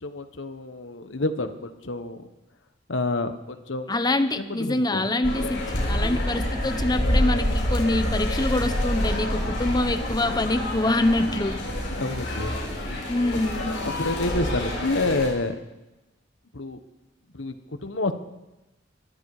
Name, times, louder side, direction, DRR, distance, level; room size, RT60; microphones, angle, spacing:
voice 1, 0.0-2.3 2.9-3.9 4.4-5.0 12.0-12.6 13.6-15.5 16.5-16.8 17.3-17.5 17.8-18.1, left 2 dB, 90° left, 9 dB, 1.3 m, -28 dB
voice 2, 3.9-11.7 13.1-13.8, left 2 dB, 20° left, 10 dB, 1.0 m, -25 dB
sound 1, 5.2-15.3, left 1 dB, 70° left, 6.5 m, -27 dB
21.0 x 13.5 x 5.0 m, 1.0 s
head